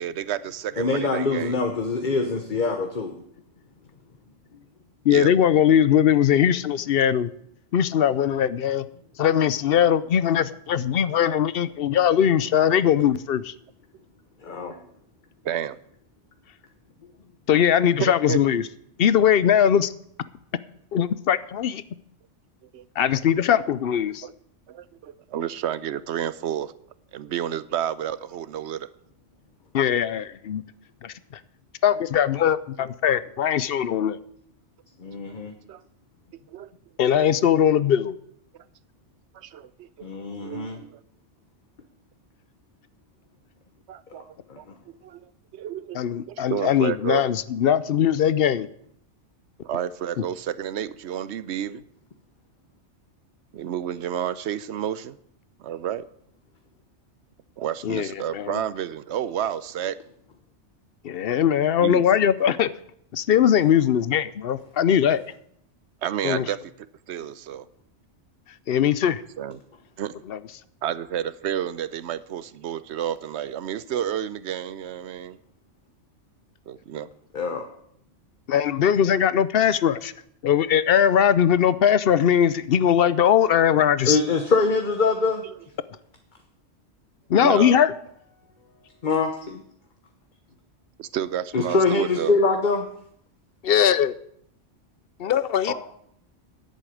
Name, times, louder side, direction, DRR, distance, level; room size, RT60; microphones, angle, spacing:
voice 1, 0.0-1.6 5.1-5.3 15.4-15.8 18.0-18.4 22.7-22.8 24.2-24.3 24.7-26.7 27.1-28.9 35.7-35.8 36.5-36.7 39.3-40.1 40.4-41.0 43.9-44.7 45.0-47.3 49.6-51.8 53.5-55.2 55.6-56.0 57.6-60.0 61.8-62.0 66.0-66.6 67.1-67.7 69.4-69.6 70.0-70.2 70.8-75.4 76.7-77.1 87.4-87.8 91.0-92.3, right 10 dB, 70° right, 16 dB, 0.9 m, -30 dB
voice 2, 0.8-3.2 14.4-14.8 35.0-35.5 40.0-40.8 44.5-44.6 77.3-77.6 84.1-85.4 89.0-89.6 91.5-92.8 95.7-95.8, left 3 dB, 45° left, 5 dB, 1.2 m, -24 dB
voice 3, 5.0-7.3 7.7-8.9 9.2-13.5 17.5-18.7 19.0-19.9 20.9-21.8 23.0-24.3 29.7-30.6 31.0-31.4 31.8-34.2 37.0-38.2 45.9-48.7 50.2-50.3 57.8-58.6 61.0-62.7 63.1-65.2 66.2-66.5 68.7-69.2 70.3-70.4 78.5-80.1 80.4-84.2 87.3-87.9 93.6-94.1 95.2-95.7, left 9 dB, 60° left, 16 dB, 0.8 m, -20 dB
10.5 x 8.1 x 9.1 m, 0.70 s
omnidirectional pair, 1.2 m